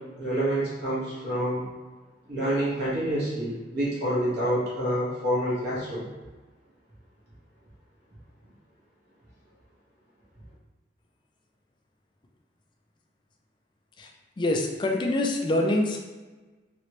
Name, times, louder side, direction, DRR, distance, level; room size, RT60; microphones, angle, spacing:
voice 1, 0.2-1.7 2.3-6.0, right 1 dB, 55° right, -8 dB, 1.3 m, -27 dB
voice 2, 14.4-16.0, left 1 dB, 25° left, 1 dB, 0.3 m, -25 dB
3.1 x 3.0 x 2.9 m, 1.2 s
head